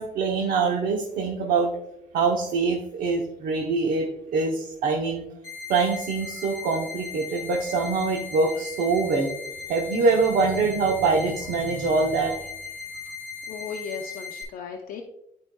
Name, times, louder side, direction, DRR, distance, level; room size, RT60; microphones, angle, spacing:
voice 1, 0.0-1.7 2.1-5.2 5.7-9.3 9.7-12.3, right 4 dB, 85° right, 0 dB, 0.9 m, -24 dB
sound 1, 5.4-14.4, left 5 dB, 25° left, 2.4 m, -38 dB
voice 2, 13.5-15.0, left 6 dB, 75° left, 1 dB, 0.7 m, -36 dB
11.5 x 4.7 x 2.3 m, 0.81 s
cardioid pair, 170°, 14 cm